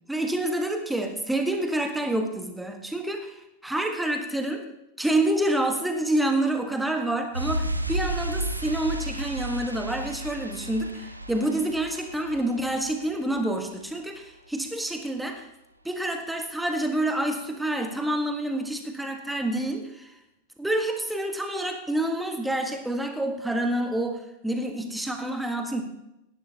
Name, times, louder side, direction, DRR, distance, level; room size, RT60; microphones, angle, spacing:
voice 1, 0.1-4.7 5.0-15.4 15.8-20.2 20.6-25.8, right 1 dB, 5° right, 4 dB, 1.3 m, -28 dB
sound 1, 7.3-13.9 14.1-14.2, right 1 dB, 85° right, 0.7 m, -33 dB
17.0 x 11.5 x 2.8 m, 0.87 s
figure-of-eight pair, 90°, 0 cm